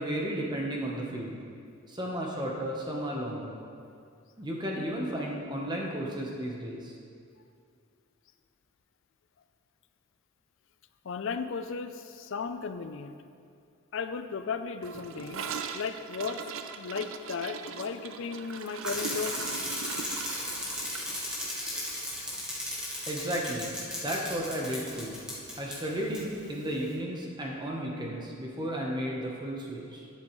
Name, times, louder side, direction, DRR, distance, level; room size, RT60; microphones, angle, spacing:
voice 1, 0.0-1.4 1.9-3.6 4.4-6.9 23.1-23.7 24.0-25.2 25.6-30.0, equal, 20° right, -2 dB, 0.9 m, -33 dB
voice 2, 11.0-13.2 13.9-15.5 15.7-16.4 16.8-19.4, left 5 dB, 55° left, 10 dB, 0.4 m, -35 dB
Gurgling / Toilet flush, 14.8-23.1 23.3-23.5 23.8-24.2 24.5-24.6 24.9-25.0 25.9-26.0, right 6 dB, 65° right, 0.4 m, -40 dB
Bicycle, 18.8-25.8 26.1-26.2, left 1 dB, 5° right, 1.3 m, -36 dB
10.5 x 7.6 x 3.1 m, 2.4 s
head